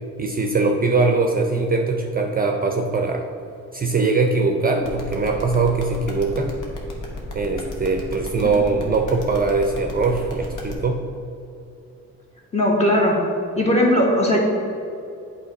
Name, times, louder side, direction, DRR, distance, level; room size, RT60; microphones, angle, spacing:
voice 1, 0.2-3.3 3.7-6.5 7.3-11.0, right 3 dB, 30° right, 3 dB, 0.5 m, -21 dB
sound 1, 4.8-10.7, left 2 dB, 85° left, 1.3 m, -32 dB
voice 2, 12.5-13.3 13.6-14.4, left 1 dB, 20° left, -2 dB, 1.6 m, -19 dB
8.3 x 3.3 x 5.3 m, 2.7 s
cardioid pair, 90°, 30 cm